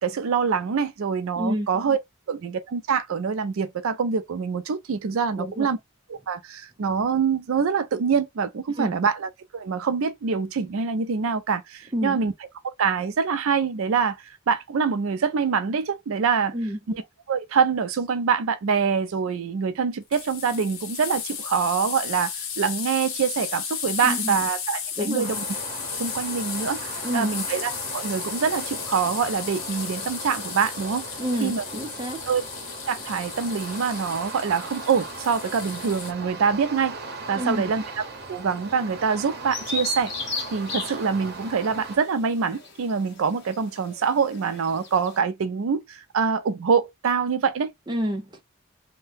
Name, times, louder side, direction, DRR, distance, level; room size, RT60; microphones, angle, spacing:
voice 1, 0.0-2.0 2.3-5.8 6.1-12.3 12.8-16.5 16.9-17.0 17.3-25.4 26.0-31.0 31.4-31.6 32.3-32.4 32.9-37.0 37.3-37.8 38.3-40.1 40.5-47.7, right 6 dB, 80° right, 0.4 m, -25 dB
voice 2, 1.4-1.7 5.4-5.7 8.8-8.9 11.9-12.2 16.5-16.8 24.0-24.4 25.0-25.3 27.0-27.3 31.2-32.2 37.3-37.7 47.9-48.4, equal, 20° right, 0.6 m, -28 dB
sound 1, 20.1-36.1, left 7 dB, 85° left, 0.7 m, -34 dB
sound 2, 25.2-42.0, right 3 dB, 50° right, 0.8 m, -38 dB
Bird vocalization bird call bird song, 39.5-45.2, left 3 dB, 55° left, 0.9 m, -35 dB
2.7 x 2.1 x 3.3 m
head